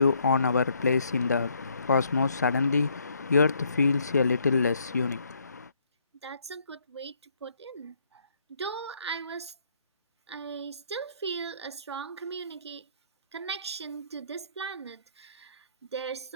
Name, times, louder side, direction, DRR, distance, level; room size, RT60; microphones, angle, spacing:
voice 1, 0.0-5.7, left 4 dB, 30° left, 0.6 m, -25 dB
voice 2, 6.2-9.6 10.3-12.9 13.3-16.3, right 5 dB, 50° right, 1.5 m, -38 dB
hypercardioid pair, 180°, 18 cm